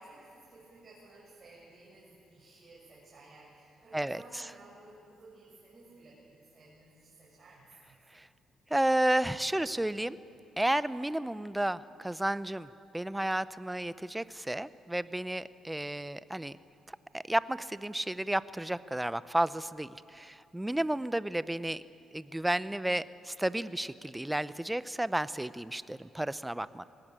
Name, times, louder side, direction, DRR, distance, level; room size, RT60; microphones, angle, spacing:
voice 1, 0.0-8.0 20.6-20.8, right 2 dB, 40° right, -6 dB, 7.8 m, -55 dB
voice 2, 3.9-4.5 8.1-8.3 8.7-10.2 10.6-12.7 12.9-16.6 16.9-21.8 22.1-26.8, right 1 dB, 10° right, 15 dB, 0.7 m, -32 dB
22.5 x 19.5 x 9.0 m, 2.7 s
cardioid pair, 90°, 0 cm